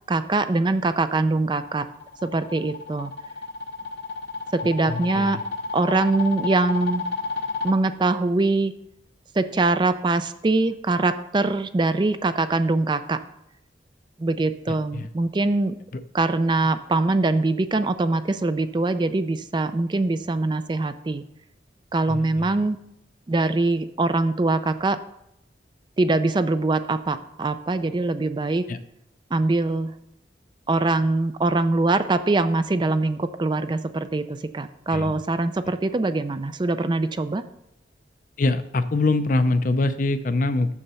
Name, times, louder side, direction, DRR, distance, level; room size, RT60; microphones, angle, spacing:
voice 1, 0.1-1.9 2.2-3.1 4.5-5.4 5.7-7.0 7.6-8.7 9.3-13.2 14.2-15.7 16.1-21.2 21.9-22.8 23.3-25.0 26.0-28.6 29.3-29.9 30.7-37.4, right 2 dB, 25° right, 11 dB, 0.4 m, -23 dB
sound 1, 1.7-7.7, left 3 dB, 65° left, 0.9 m, -31 dB
voice 2, 4.9-5.4 14.7-15.1 15.9-16.0 22.1-22.6 28.7-28.8 34.9-35.1 38.4-40.7, left 2 dB, 45° left, 11 dB, 0.5 m, -24 dB
7.1 x 6.6 x 6.8 m, 0.80 s
head